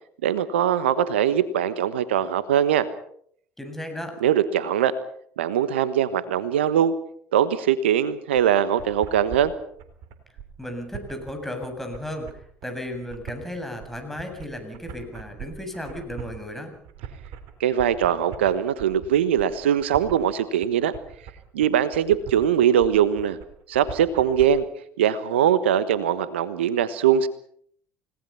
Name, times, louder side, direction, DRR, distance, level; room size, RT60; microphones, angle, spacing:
voice 1, 0.2-2.9 4.2-4.9 5.4-7.0 7.3-9.5 17.6-20.9 21.5-23.4 23.7-24.7 25.0-27.3, right 9 dB, 85° right, 14 dB, 1.3 m, -21 dB
voice 2, 3.6-4.1 10.6-16.7, left 1 dB, 5° left, 4 dB, 7.5 m, -34 dB
sound 1, 8.3-24.5, right 8 dB, 65° right, 3.9 m, -41 dB
29.5 x 18.5 x 5.7 m, 0.63 s
hypercardioid pair, 70°, 6 cm